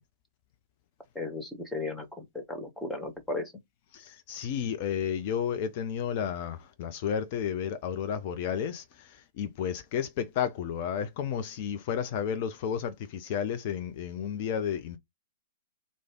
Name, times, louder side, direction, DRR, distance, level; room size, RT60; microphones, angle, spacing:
voice 1, 1.1-3.5, left 2 dB, 5° left, 1.0 m, -35 dB
voice 2, 3.9-15.0, left 8 dB, 40° left, 0.5 m, -32 dB
3.2 x 2.5 x 3.6 m
figure-of-eight pair, 110°, 0 cm